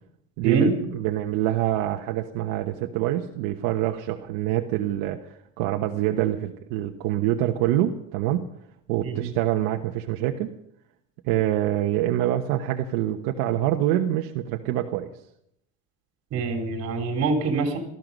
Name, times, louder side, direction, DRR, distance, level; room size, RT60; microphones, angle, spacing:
voice 1, 0.4-8.5 8.9-10.5 11.2-15.1, right 13 dB, 70° right, 4 dB, 1.2 m, -25 dB
voice 2, 16.3-17.8, right 3 dB, 40° right, 4 dB, 3.6 m, -24 dB
18.5 x 14.0 x 5.3 m, 0.77 s
cardioid pair, 165°, 38 cm